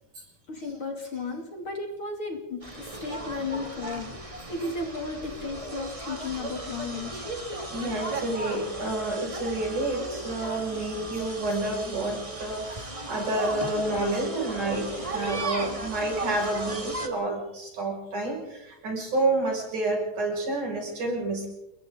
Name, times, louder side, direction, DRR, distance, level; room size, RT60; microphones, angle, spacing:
voice 1, 0.5-4.2 4.5-7.3, left 3 dB, 40° left, 2 dB, 3.4 m, -34 dB
sound 1, 2.6-17.1, right 2 dB, 15° right, 1.5 m, -36 dB
voice 2, 7.7-21.5, right 2 dB, 65° right, -1 dB, 8.0 m, -29 dB
29.0 x 22.5 x 4.0 m, 0.87 s
omnidirectional pair, 3.8 m